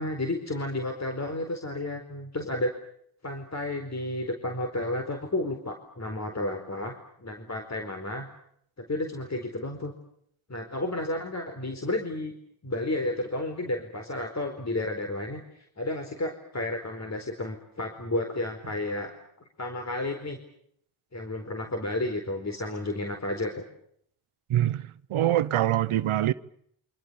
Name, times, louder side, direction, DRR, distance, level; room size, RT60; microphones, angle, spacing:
voice 1, 0.0-2.7 3.2-8.3 8.8-9.9 10.5-12.3 12.6-19.1 19.6-20.4 21.1-23.6, left 1 dB, 35° left, 4.6 m, -32 dB
voice 2, 24.5-26.3, right 12 dB, 90° right, 1.1 m, -24 dB
29.0 x 26.0 x 7.1 m
cardioid pair, 80°, 48 cm